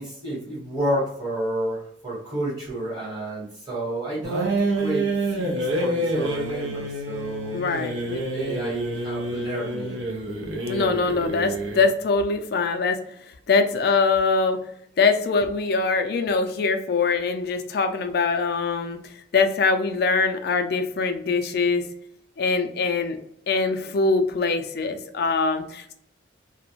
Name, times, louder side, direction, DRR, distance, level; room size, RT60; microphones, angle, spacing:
voice 1, 0.0-7.6 8.3-10.0, right 1 dB, 20° right, -6 dB, 1.2 m, -30 dB
sound 1, 4.2-11.9, right 1 dB, 70° right, 0.6 m, -28 dB
voice 2, 7.5-8.2 10.7-13.0 13.5-14.6 15.0-19.0 19.3-21.8 22.4-23.2 23.5-25.9, left 4 dB, 50° left, 7 dB, 0.3 m, -23 dB
2.3 x 2.1 x 2.9 m, 0.75 s
head